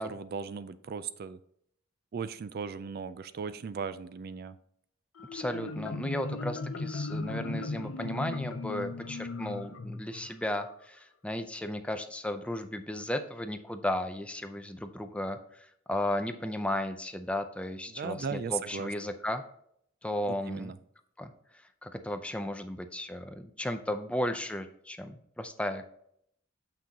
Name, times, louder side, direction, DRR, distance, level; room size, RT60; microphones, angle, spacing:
voice 1, 0.0-1.4 2.1-4.6 17.9-18.9 20.3-20.8, right 5 dB, 50° right, 13 dB, 0.4 m, -37 dB
Marimba xylophone, 5.2-10.7, left 3 dB, 90° left, 0.6 m, -37 dB
voice 2, 5.3-15.4 15.9-19.4 20.0-20.7 21.2-21.3 21.8-25.9, left 1 dB, 5° left, 8 dB, 0.5 m, -34 dB
6.8 x 6.0 x 2.8 m, 0.69 s
head